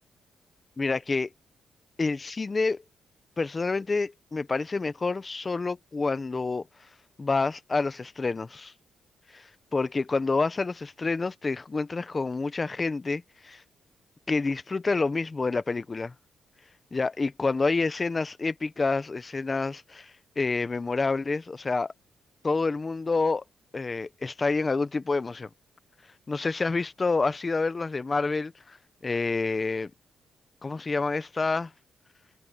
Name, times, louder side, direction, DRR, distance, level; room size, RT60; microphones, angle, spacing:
voice 1, 0.8-1.3 2.0-2.8 3.4-6.6 7.2-8.7 9.3-13.6 14.3-16.1 16.9-20.1 20.4-21.9 22.4-23.4 23.7-25.5 26.3-28.8 29.0-29.9 30.6-31.7, left 3 dB, 30° left, 0.9 m, -28 dB
cardioid pair, 105°, 0 cm